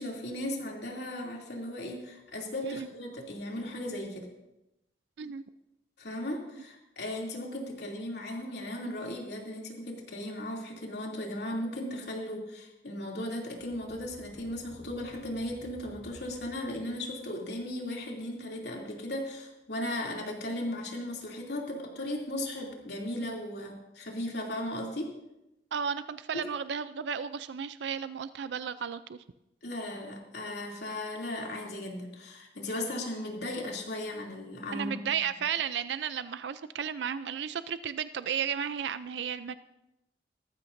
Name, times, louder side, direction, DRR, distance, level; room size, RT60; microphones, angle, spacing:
voice 1, 0.0-4.3 6.0-25.1 26.3-26.5 29.6-35.0, left 1 dB, 75° left, -1 dB, 2.8 m, -36 dB
sound 1, 13.6-17.3, equal, 10° left, 5.7 m, -54 dB
voice 2, 25.7-29.2 34.7-39.5, right 7 dB, 85° right, 14 dB, 0.4 m, -33 dB
18.5 x 14.0 x 2.6 m, 0.93 s
head